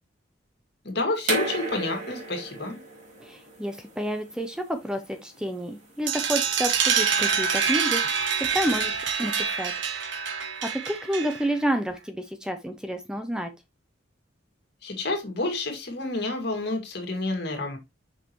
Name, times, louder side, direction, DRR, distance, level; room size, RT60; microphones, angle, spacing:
voice 1, 0.8-2.8 14.8-17.8, left 2 dB, 60° left, 2.2 m, -29 dB
sound 1, 1.2-6.8, right 2 dB, 40° right, 2.9 m, -34 dB
voice 2, 3.2-8.0 8.4-9.7 10.7-13.5, equal, 5° right, 0.6 m, -30 dB
sound 2, 6.1-11.6, right 6 dB, 65° right, 1.3 m, -26 dB
6.3 x 5.6 x 3.0 m
head